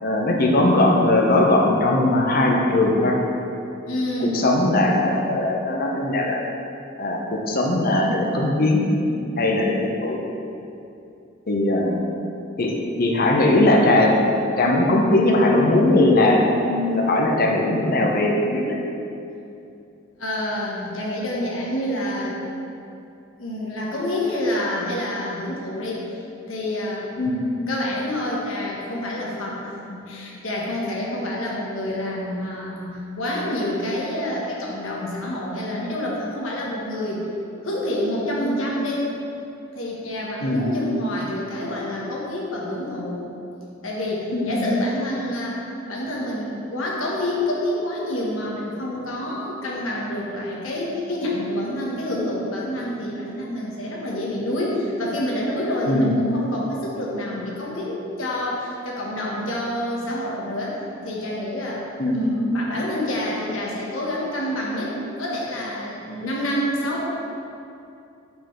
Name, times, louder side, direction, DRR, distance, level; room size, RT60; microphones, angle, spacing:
voice 1, 0.0-3.2 4.2-6.4 7.0-8.9 9.4-10.2 11.5-12.0 12.6-12.7 13.0-14.1 14.6-18.8 27.2-27.4 40.4-40.7 44.3-44.7 55.9-56.2 62.0-62.4, left 1 dB, 50° left, 0 dB, 0.8 m, -19 dB
voice 2, 3.9-4.5 20.2-22.4 23.4-26.0 26.5-27.1 27.7-37.2 37.6-39.1 39.7-43.2 43.8-61.8 62.1-67.0, left 1 dB, 85° left, -4 dB, 1.2 m, -27 dB
5.3 x 4.4 x 4.5 m, 2.7 s
head